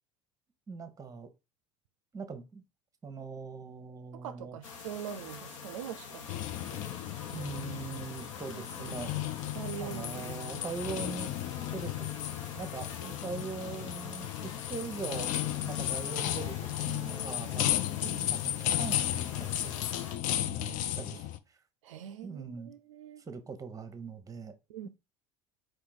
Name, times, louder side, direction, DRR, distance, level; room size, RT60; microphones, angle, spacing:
voice 1, 0.7-1.3 2.1-2.6 3.0-4.6 7.3-9.3 9.8-11.3 11.7-12.1 12.5-15.3 15.6-19.7 20.4-21.6 22.2-22.7 23.3-24.5, right 5 dB, 20° right, 0.9 m, -41 dB
voice 2, 4.1-6.3 6.7-6.9 8.6-8.9 9.5-10.4 18.0-18.3 21.8-23.3 24.7-24.9, right 10 dB, 75° right, 0.4 m, -43 dB
sound 1, 4.6-20.2, left 5 dB, 75° left, 0.8 m, -45 dB
sound 2, 6.3-21.4, left 13 dB, 50° left, 0.5 m, -34 dB
4.5 x 2.6 x 3.9 m
hypercardioid pair, 70°, 16 cm